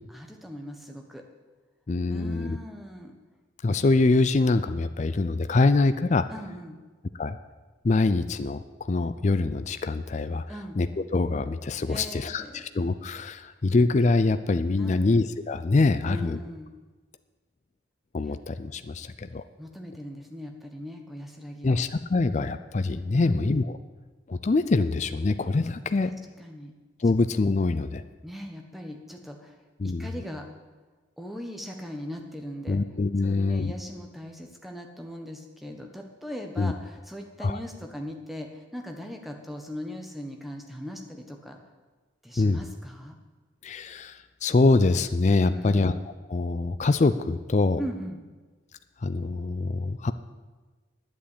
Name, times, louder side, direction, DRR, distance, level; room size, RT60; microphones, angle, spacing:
voice 1, 0.1-1.2 2.1-3.1 6.3-6.8 10.5-10.8 11.9-12.7 14.8-15.1 16.0-16.7 18.2-18.3 19.6-21.8 23.1-23.6 26.0-26.7 28.2-29.6 29.8-30.5 31.2-32.8 33.2-41.6 42.2-43.2 45.5-45.9 47.8-48.2, equal, ahead, 2 dB, 1.2 m, -39 dB
voice 2, 1.9-2.6 3.6-6.2 7.2-7.4 7.8-10.4 10.8-16.4 18.1-19.4 21.6-23.8 24.3-26.1 27.0-28.0 29.8-30.1 32.7-33.7 36.6-36.7 37.4-37.6 42.4-42.6 43.6-46.0 46.3-47.8 49.0-50.1, left 3 dB, 35° left, 11 dB, 0.4 m, -24 dB
9.8 x 8.5 x 8.5 m, 1.3 s
head